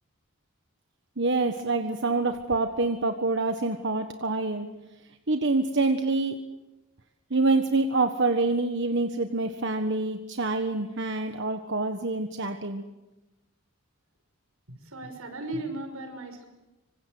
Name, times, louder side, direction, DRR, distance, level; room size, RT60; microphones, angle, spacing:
voice 1, 1.2-4.7 5.3-6.5 7.3-12.8, right 3 dB, 55° right, 6 dB, 1.4 m, -26 dB
voice 2, 14.8-16.5, right 2 dB, 80° right, 6 dB, 6.0 m, -36 dB
27.0 x 25.5 x 7.9 m, 1.0 s
head